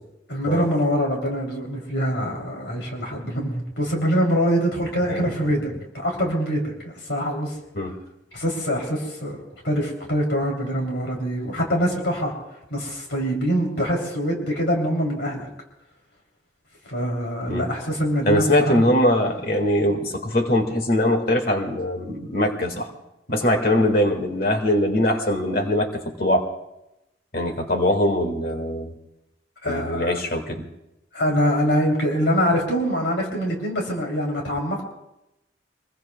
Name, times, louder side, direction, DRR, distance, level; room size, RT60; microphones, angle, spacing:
voice 1, 0.3-7.6 8.3-9.4 9.6-12.3 12.7-15.5 16.9-18.8 29.6-30.2 31.1-34.8, equal, 75° left, 0 dB, 3.5 m, -24 dB
voice 2, 18.3-22.9 23.3-26.5 27.3-28.9 29.6-30.7, left 1 dB, 55° left, 3 dB, 2.1 m, -22 dB
26.5 x 21.5 x 2.4 m, 0.90 s
head